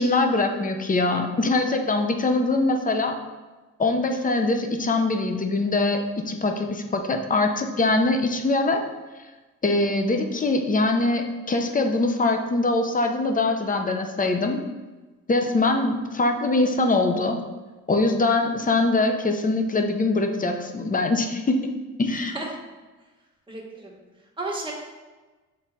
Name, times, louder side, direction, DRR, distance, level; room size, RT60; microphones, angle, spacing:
voice 1, 0.0-3.2 3.8-8.8 9.6-14.6 15.3-17.4 17.9-21.7 22.0-22.4, left 2 dB, 25° left, 5 dB, 0.8 m, -23 dB
voice 2, 22.1-22.5 23.5-23.9 24.4-24.7, right 2 dB, 15° right, -3 dB, 1.8 m, -33 dB
7.5 x 3.8 x 4.2 m, 1.2 s
cardioid pair, 90°, 30 cm